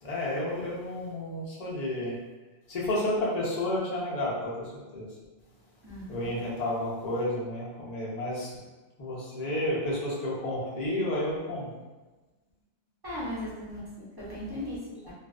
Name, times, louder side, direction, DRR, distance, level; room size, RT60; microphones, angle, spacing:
voice 1, 0.0-2.2 2.7-5.1 6.1-8.6 9.0-11.7, left 1 dB, 45° left, -6 dB, 0.6 m, -31 dB
voice 2, 5.8-6.3 13.0-13.8 14.2-15.1, left 1 dB, 25° right, -10 dB, 0.6 m, -37 dB
2.4 x 2.4 x 2.3 m, 1.2 s
omnidirectional pair, 1.2 m